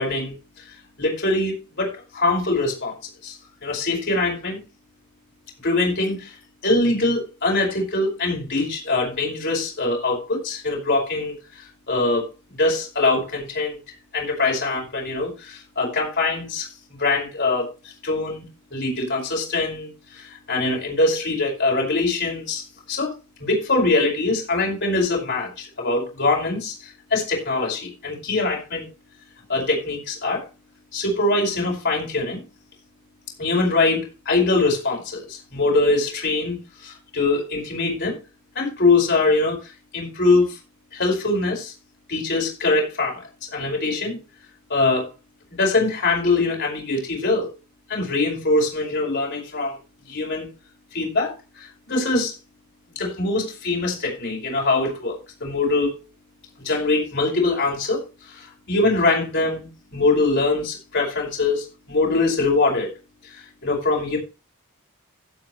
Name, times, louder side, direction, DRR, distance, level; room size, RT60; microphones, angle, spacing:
voice 1, 0.0-2.9 3.2-4.6 5.6-6.4 6.6-12.3 12.6-13.8 14.1-18.4 18.7-23.1 23.4-28.9 29.5-30.5 30.9-32.4 33.4-38.2 38.6-40.6 40.9-41.7 42.1-44.2 44.7-45.1 45.5-47.5 47.9-49.8 50.1-50.5 50.9-52.4 53.0-56.0 56.6-62.9 63.2-64.2, left 3 dB, 50° left, -2 dB, 5.2 m, -23 dB
16.0 x 8.2 x 3.2 m, 0.29 s
head